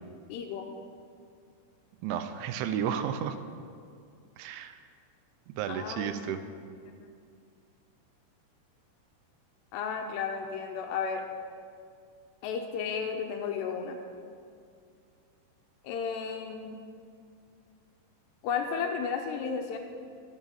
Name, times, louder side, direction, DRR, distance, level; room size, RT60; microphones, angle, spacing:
voice 1, 0.3-0.7 5.7-6.2 7.0-7.1 9.7-11.3 12.4-14.0 15.8-16.8 18.4-19.8, left 6 dB, 80° left, 4 dB, 2.6 m, -33 dB
voice 2, 2.0-3.4 4.4-4.8 5.6-6.4, right 8 dB, 85° right, 10 dB, 3.0 m, -32 dB
22.0 x 8.0 x 4.2 m, 2.3 s
omnidirectional pair, 5.4 m